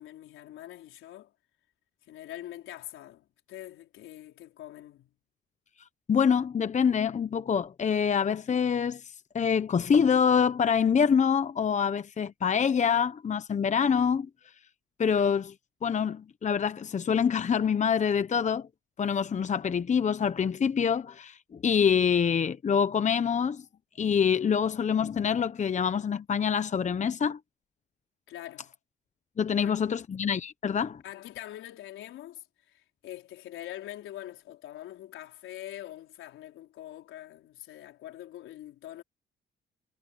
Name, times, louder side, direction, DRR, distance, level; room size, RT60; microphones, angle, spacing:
voice 1, 0.0-1.3 2.1-5.1 28.3-28.7 29.6-29.8 31.0-39.0, left 13 dB, 85° left, 4.7 m, -44 dB
voice 2, 6.1-9.0 9.3-14.3 15.0-15.5 15.8-18.7 19.0-23.6 24.0-27.4 29.4-31.0, left 7 dB, 35° left, 0.9 m, -25 dB
cardioid pair, 90°, 20 cm